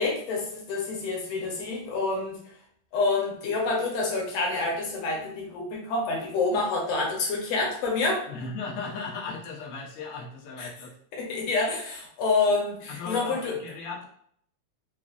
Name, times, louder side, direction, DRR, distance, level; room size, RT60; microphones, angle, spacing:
voice 1, 0.0-2.4 2.9-8.3 10.6-10.7 11.1-13.5, left 3 dB, 65° left, -1 dB, 1.7 m, -27 dB
voice 2, 8.3-10.9 12.9-14.1, left 4 dB, 90° left, -3 dB, 1.2 m, -36 dB
5.5 x 2.4 x 2.4 m, 0.64 s
omnidirectional pair, 3.6 m